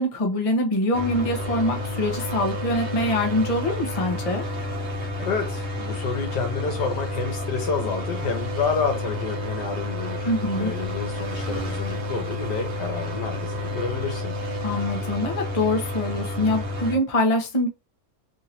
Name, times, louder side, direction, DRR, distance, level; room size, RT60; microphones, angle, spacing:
voice 1, 0.0-4.4 10.2-10.7 14.6-17.7, left 1 dB, 35° left, 0.6 m, -24 dB
sound 1, 0.9-17.0, left 2 dB, 40° right, 1.0 m, -30 dB
voice 2, 5.3-14.3, left 5 dB, 65° left, 1.6 m, -29 dB
3.7 x 2.8 x 2.9 m
omnidirectional pair, 2.0 m